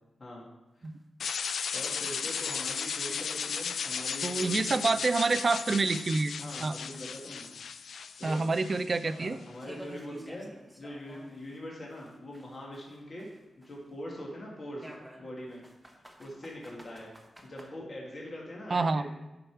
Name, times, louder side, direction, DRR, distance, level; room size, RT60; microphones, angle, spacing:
sound 1, 0.8-0.9 1.3-1.4 1.9-2.0 2.5-2.6 3.0-3.1 3.6-3.7 4.2-6.7 6.9-11.6 11.9-13.9 14.8-17.7, equal, 5° right, 1.1 m, -52 dB
sound 2, 1.2-9.2, left 6 dB, 75° left, 0.3 m, -35 dB
voice 1, 1.7-4.9 6.4-7.5 7.7-8.5 9.2-10.5 10.8-14.9 15.2-15.6 16.2-17.1 17.4-19.1, left 1 dB, 40° left, -3 dB, 2.0 m, -43 dB
voice 2, 4.2-6.3 6.6-6.8 8.2-9.4 18.7-19.1, right 3 dB, 40° right, 12 dB, 0.4 m, -27 dB
10.5 x 5.0 x 4.6 m, 1.0 s
wide cardioid pair, 115°, 0 cm